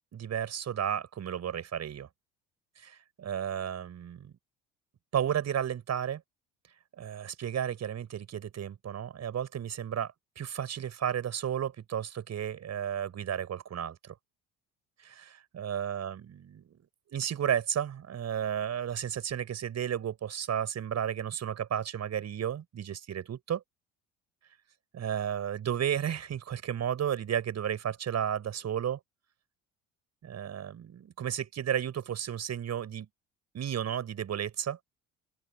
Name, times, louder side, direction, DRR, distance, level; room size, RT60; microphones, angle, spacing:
voice 1, 0.1-2.1 2.8-4.3 5.1-6.2 7.0-14.1 15.0-16.7 17.1-23.6 24.9-29.0 30.2-33.1 33.5-34.8, right 9 dB, 45° right, 5.9 m, -33 dB
open air
hypercardioid pair, 60°, 37 cm